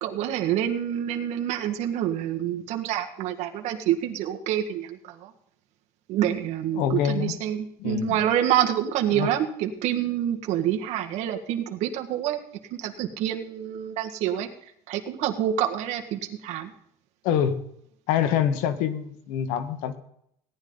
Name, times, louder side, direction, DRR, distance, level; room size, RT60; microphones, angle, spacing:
voice 1, 0.0-5.3 6.1-12.4 12.8-14.5 14.9-16.7, right 11 dB, 60° right, 3 dB, 1.7 m, -27 dB
voice 2, 6.7-7.4 7.8-8.2 9.1-9.3 17.2-17.6 18.1-20.0, left 9 dB, 85° left, 10 dB, 1.4 m, -25 dB
17.5 x 10.5 x 3.9 m, 0.71 s
cardioid pair, 155°, 13 cm